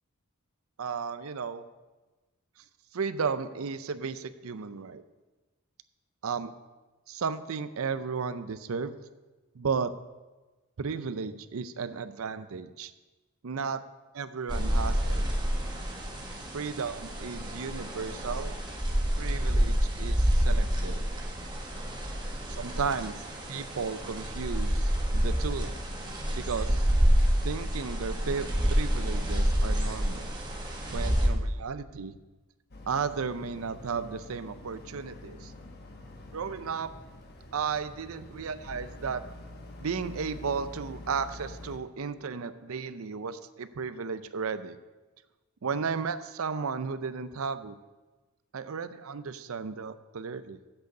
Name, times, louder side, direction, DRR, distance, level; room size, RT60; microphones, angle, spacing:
voice 1, 0.8-1.6 2.9-5.0 6.2-6.5 7.1-9.0 9.5-9.9 10.8-12.9 13.4-13.8 14.1-15.2 16.5-18.5 19.1-21.0 22.5-23.2 23.5-25.7 26.4-26.9 27.4-30.3 30.9-32.2 32.9-35.5 36.3-36.9 37.5-39.2 39.8-44.8 45.6-47.8 48.5-50.6, right 5 dB, 75° right, 13 dB, 0.5 m, -34 dB
sound 1, 14.5-31.3, equal, 20° right, 1.4 m, -28 dB
Boat Water vehicle, 32.7-41.8, left 1 dB, 50° left, 1.2 m, -46 dB
8.0 x 6.5 x 8.0 m, 1.2 s
head